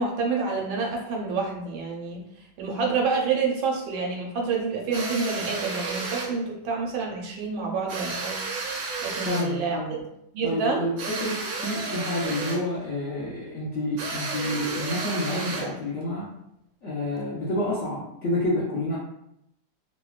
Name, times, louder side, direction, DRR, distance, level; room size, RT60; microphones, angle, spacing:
voice 1, 0.0-8.4 9.0-10.0 10.3-10.9, right 4 dB, 90° right, 0 dB, 1.4 m, -28 dB
sound 1, 4.9-6.4 7.9-9.6 11.0-12.7 14.0-15.8, right 3 dB, 70° right, 1.0 m, -32 dB
voice 2, 9.3-9.9 10.4-16.3 16.8-19.0, left 1 dB, 70° left, -9 dB, 0.7 m, -29 dB
3.3 x 2.1 x 2.3 m, 0.80 s
omnidirectional pair, 2.1 m